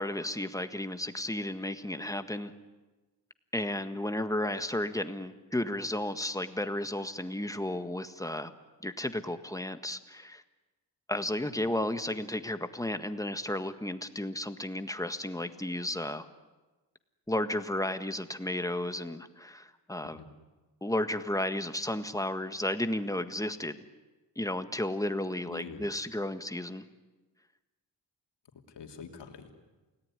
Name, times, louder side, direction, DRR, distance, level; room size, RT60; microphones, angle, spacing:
voice 1, 0.0-2.5 3.5-8.5 8.8-10.4 11.1-16.2 17.3-20.2 20.8-23.8 24.3-26.8, left 1 dB, 10° left, 9 dB, 1.6 m, -33 dB
voice 2, 25.5-25.8 28.7-29.5, left 6 dB, 85° left, 3 dB, 3.1 m, -45 dB
29.0 x 18.5 x 9.8 m, 1.2 s
cardioid pair, 85°, 41 cm